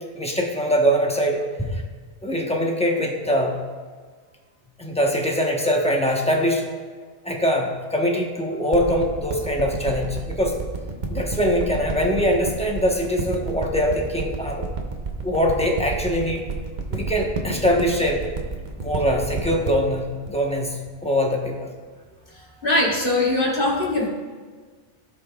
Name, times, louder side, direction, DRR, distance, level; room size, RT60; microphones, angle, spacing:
voice 1, 0.1-1.8 2.2-3.6 4.8-6.6 7.2-10.5 11.1-14.6 15.2-16.4 16.9-18.2 18.8-21.7, equal, 5° left, 0 dB, 1.0 m, -23 dB
sound 1, 8.7-21.5 22.1-22.2, right 3 dB, 45° right, 0.9 m, -30 dB
voice 2, 22.6-24.1, left 2 dB, 50° left, -3 dB, 1.6 m, -21 dB
16.0 x 5.3 x 2.4 m, 1.5 s
omnidirectional pair, 1.2 m